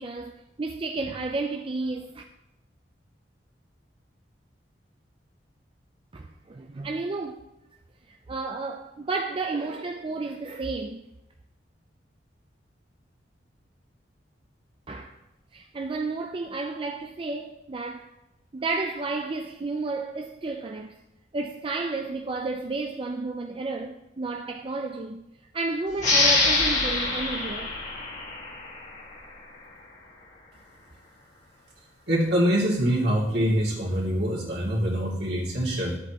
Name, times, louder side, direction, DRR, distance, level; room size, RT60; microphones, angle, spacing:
voice 1, 0.0-2.2 6.1-7.4 8.1-11.0 14.9-15.2 15.5-18.1 18.5-21.0 21.3-25.2 25.5-27.7, right 3 dB, 30° right, 0.5 m, -32 dB
sound 1, 26.0-29.2, left 3 dB, 45° left, 1.9 m, -25 dB
voice 2, 32.1-36.0, equal, 65° right, 2.6 m, -24 dB
12.0 x 8.2 x 3.0 m
head